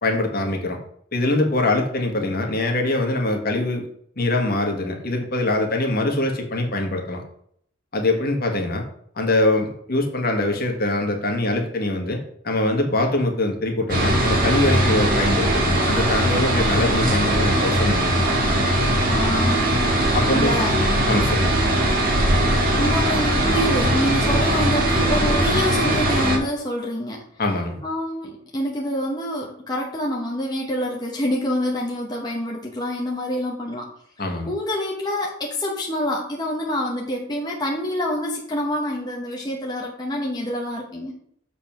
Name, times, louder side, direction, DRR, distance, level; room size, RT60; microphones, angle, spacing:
voice 1, 0.0-0.8 1.1-3.9 4.2-7.2 7.9-8.8 9.1-18.2 20.1-20.5 21.1-21.6 27.4-27.8 34.2-34.5, left 2 dB, 50° left, 2 dB, 1.5 m, -23 dB
sound 1, 13.9-26.4, right 1 dB, 45° right, 1.8 m, -20 dB
voice 2, 19.1-19.9 20.3-20.8 22.8-27.2 27.8-33.9 34.5-41.1, left 1 dB, 20° left, -1 dB, 1.0 m, -26 dB
7.3 x 4.1 x 5.8 m, 0.67 s
head